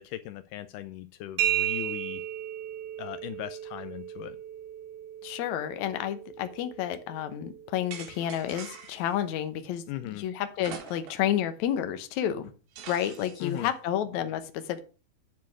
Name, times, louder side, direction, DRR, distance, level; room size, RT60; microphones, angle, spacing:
voice 1, 0.0-2.2 3.0-4.4 9.9-10.2 13.4-13.7, left 13 dB, 85° left, 11 dB, 1.8 m, -38 dB
sound 1, 1.4-8.9, right 11 dB, 90° right, 3.3 m, -35 dB
voice 2, 5.2-12.5 12.9-14.8, left 10 dB, 70° left, 10 dB, 1.9 m, -30 dB
sound 2, 7.9-9.1 10.6-11.3 11.7-11.8 12.8-13.6, right 7 dB, 75° right, 3.3 m, -44 dB
9.5 x 4.7 x 6.1 m, 0.35 s
omnidirectional pair, 4.3 m